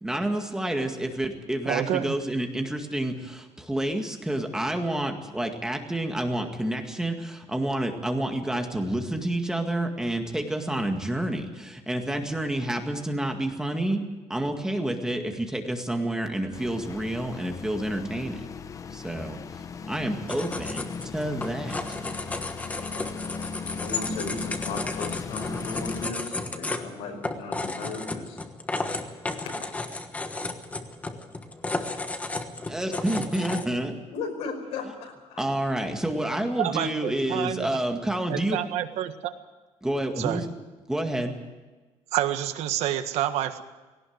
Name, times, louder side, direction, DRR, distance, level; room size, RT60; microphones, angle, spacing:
voice 1, 0.0-14.0 14.3-18.4 18.9-19.4 19.9-22.0 32.7-33.9 35.4-38.6 39.8-40.5 40.9-41.4, right 1 dB, 5° right, 4 dB, 2.0 m, -29 dB
voice 2, 1.6-2.1 36.6-37.8 38.3-39.3 40.2-40.4 42.1-43.6, right 12 dB, 80° right, 8 dB, 1.6 m, -28 dB
sound 1, 16.5-26.1, left 5 dB, 30° left, 0.8 m, -38 dB
sound 2, 20.3-33.6, left 2 dB, 15° left, 1.3 m, -33 dB
voice 3, 23.8-28.4 29.0-29.6 34.1-35.4, left 4 dB, 80° left, 4 dB, 5.3 m, -36 dB
19.5 x 18.0 x 8.0 m, 1.2 s
cardioid pair, 165°, 11 cm